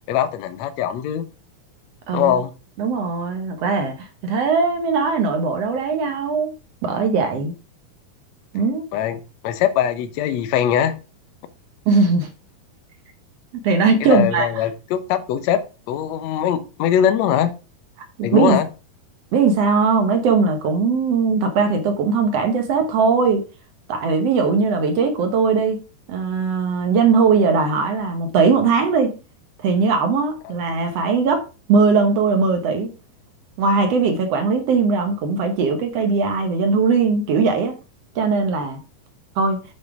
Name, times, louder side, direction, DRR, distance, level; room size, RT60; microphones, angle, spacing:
voice 1, 0.1-1.2 2.1-2.5 8.9-11.0 14.0-15.6 15.9-17.5 18.2-18.7 30.4-30.5, left 9 dB, 85° left, 1.5 m, -21 dB
voice 2, 2.8-6.5 6.8-7.5 8.5-8.8 11.9-12.3 13.6-14.5 18.2-18.6 19.3-23.4 23.9-25.8 26.1-29.1 29.6-31.4 31.7-32.9 33.6-37.8 38.1-38.8 39.4-39.6, right 4 dB, 70° right, 1.5 m, -19 dB
8.0 x 6.5 x 4.8 m
omnidirectional pair, 4.4 m